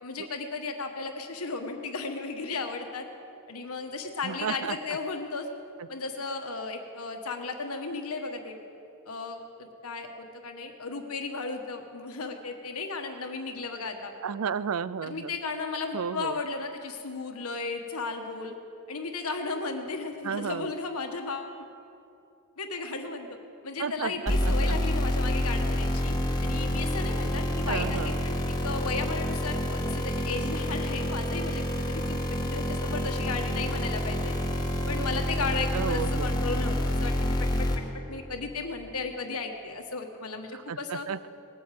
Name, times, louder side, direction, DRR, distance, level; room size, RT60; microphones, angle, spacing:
voice 1, 0.0-3.1 3.5-5.5 5.9-8.5 9.1-14.1 15.0-18.5 18.9-21.5 22.6-23.4 23.6-26.1 26.4-34.3 34.9-37.8 38.1-41.1, left 4 dB, 85° left, 4 dB, 1.5 m, -35 dB
voice 2, 4.2-4.8 14.2-15.3 15.9-16.4 20.2-20.7 23.8-24.8 27.7-28.2 35.7-36.3 40.7-41.3, right 6 dB, 75° right, 17 dB, 0.5 m, -32 dB
sound 1, 24.3-37.8, equal, 20° left, 1.4 m, -28 dB
20.0 x 8.3 x 7.7 m, 2.8 s
head